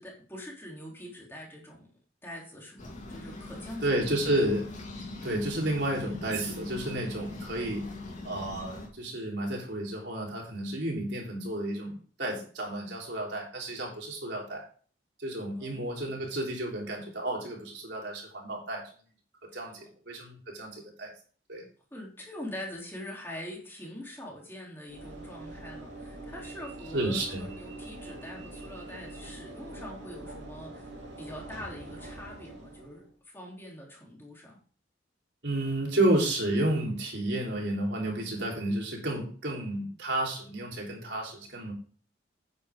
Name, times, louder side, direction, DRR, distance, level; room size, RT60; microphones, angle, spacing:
voice 1, 0.0-1.9 2.2-4.3 15.6-15.9 19.5-19.7 21.9-30.9 31.2-33.1 33.3-34.6, left 1 dB, 15° left, -2 dB, 3.3 m, -44 dB
sound 1, 2.8-8.9, left 2 dB, 40° left, 3.3 m, -42 dB
voice 2, 3.8-4.7 5.2-7.8 8.2-14.6 15.2-18.8 19.5-21.1 21.5-21.6 26.9-27.4 35.4-41.7, right 1 dB, 70° right, -1 dB, 3.9 m, -31 dB
Train / Engine / Alarm, 24.9-33.1, right 2 dB, 90° right, 3.1 m, -44 dB
9.7 x 8.7 x 3.7 m, 0.42 s
head